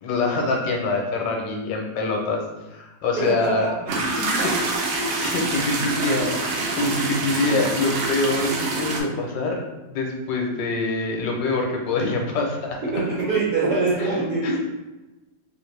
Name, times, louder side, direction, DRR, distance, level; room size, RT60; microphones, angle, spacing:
voice 1, 0.0-2.4 2.7-3.7 4.1-4.5 5.1-9.6 9.9-12.8 14.0-14.2 14.4-14.6, left 3 dB, 85° left, 1 dB, 1.4 m, -25 dB
voice 2, 3.2-4.0 4.4-4.5 12.8-14.6, right 3 dB, 60° right, -7 dB, 1.9 m, -24 dB
sound 1, 3.9-9.0, right 2 dB, 75° right, 1.3 m, -26 dB
3.6 x 2.6 x 3.2 m, 1.1 s
omnidirectional pair, 2.0 m